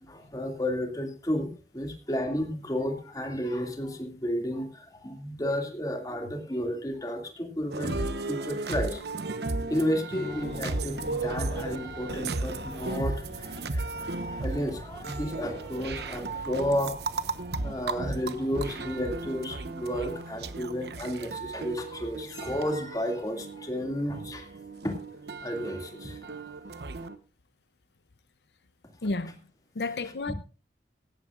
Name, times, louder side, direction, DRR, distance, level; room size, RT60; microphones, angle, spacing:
voice 1, 0.0-8.0 8.3-9.0 9.6-17.0 17.6-24.5 24.8-25.0 25.4-26.2 26.7-26.9, equal, 20° left, 2.4 m, -32 dB
sound 1, 7.7-27.2, right 3 dB, 75° right, 1.0 m, -35 dB
Strum, 10.1-14.8, left 2 dB, 55° left, 5.7 m, -44 dB
sound 2, 10.3-19.5, equal, 30° right, 4.8 m, -46 dB
voice 2, 29.0-29.5 29.7-30.3, left 3 dB, 75° left, 0.7 m, -31 dB
17.5 x 14.5 x 2.5 m
head